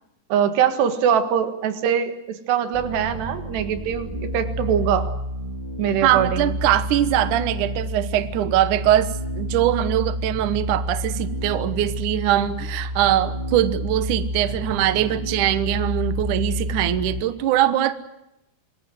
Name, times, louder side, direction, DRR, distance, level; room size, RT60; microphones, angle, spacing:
voice 1, 0.3-5.1 5.8-6.5, right 8 dB, 85° right, 9 dB, 3.9 m, -22 dB
sound 1, 2.7-17.2, equal, 10° right, 3.8 m, -29 dB
voice 2, 6.0-17.9, right 12 dB, 65° right, 12 dB, 2.3 m, -22 dB
26.5 x 21.0 x 7.8 m, 0.88 s
omnidirectional pair, 4.7 m